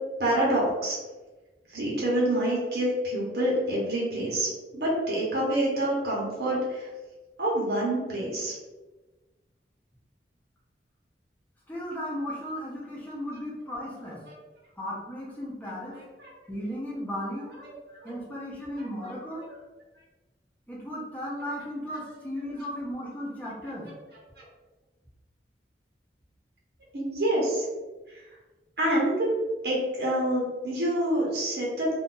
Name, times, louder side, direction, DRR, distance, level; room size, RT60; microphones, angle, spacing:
voice 1, 0.2-1.0 1.7-6.9 7.4-8.6 15.9-16.3 17.6-18.1 18.8-18.9 19.4-19.5 24.4-24.5 26.9-27.7 28.1-28.2 28.8-29.3 29.6-31.9, right 1 dB, 65° right, -5 dB, 0.9 m, -27 dB
voice 2, 11.7-14.2 14.8-16.0 16.5-17.5 18.0-19.4 20.7-23.9, equal, 10° left, -6 dB, 0.8 m, -35 dB
2.5 x 2.4 x 3.8 m, 1.2 s
head